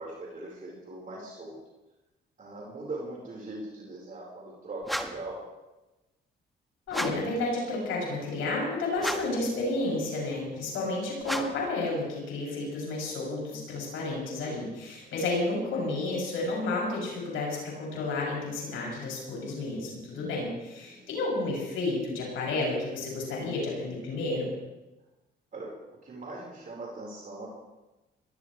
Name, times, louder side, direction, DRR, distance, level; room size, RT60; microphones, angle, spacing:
voice 1, 0.0-1.6 2.4-5.4 10.7-11.1 20.8-21.1 25.5-25.8 26.0-27.5, right 2 dB, 45° right, -3 dB, 4.9 m, -40 dB
sound 1, 4.8-5.3 6.9-7.4 9.0-9.5 11.2-11.7, equal, ahead, 1.7 m, -34 dB
voice 2, 6.9-24.5, left 2 dB, 85° left, -3 dB, 7.7 m, -31 dB
22.5 x 18.5 x 3.4 m, 1.1 s
cardioid pair, 90°, 20 cm